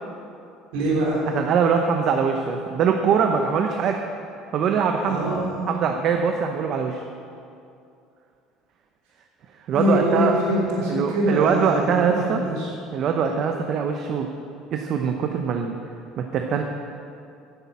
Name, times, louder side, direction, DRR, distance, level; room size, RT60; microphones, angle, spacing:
voice 1, 0.7-1.2 5.1-5.8 9.7-12.7 13.2-13.3, right 1 dB, 85° right, -4 dB, 3.6 m, -24 dB
voice 2, 1.3-4.0 4.5-5.2 5.7-7.0 9.7-10.3 10.9-12.4 12.9-14.3 14.7-15.8 16.2-16.6, right 6 dB, 50° right, 4 dB, 0.8 m, -22 dB
10.0 x 7.8 x 8.5 m, 2.5 s
cardioid pair, 125°, 0 cm